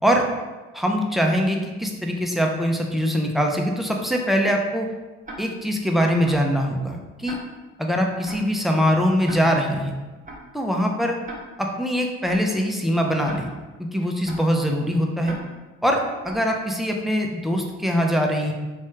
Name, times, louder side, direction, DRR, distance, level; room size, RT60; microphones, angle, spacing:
voice 1, 0.7-4.9 5.4-7.4 7.8-9.9 10.5-11.2 11.6-13.5 13.8-15.4 15.8-18.5, equal, ahead, 1 dB, 0.4 m, -22 dB
Tick-tock, 5.2-5.4 6.2-6.4 7.2-7.4 8.2-8.4 9.2-9.4 10.2-10.4 11.2-11.4 12.2-12.4 13.2-13.4 14.2-14.4 15.2-15.4 16.2-16.4, right 1 dB, 20° right, 0.7 m, -37 dB
3.0 x 2.3 x 3.1 m, 1.2 s
hypercardioid pair, 50°, 36 cm